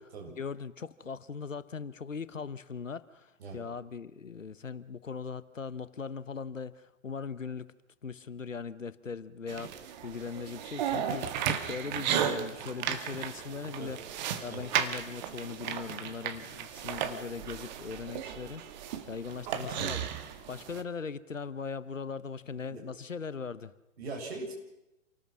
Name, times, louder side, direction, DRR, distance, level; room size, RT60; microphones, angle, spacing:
voice 1, 0.3-7.7 8.0-9.7 10.0-14.0 14.4-18.8 19.1-23.7, left 5 dB, 75° left, 16 dB, 1.2 m, -40 dB
sound 1, 9.5-20.8, right 9 dB, 35° right, 1.8 m, -35 dB
voice 2, 24.0-24.5, right 3 dB, 55° right, 1 dB, 7.5 m, -40 dB
28.5 x 19.0 x 6.2 m, 0.92 s
figure-of-eight pair, 115°, 39 cm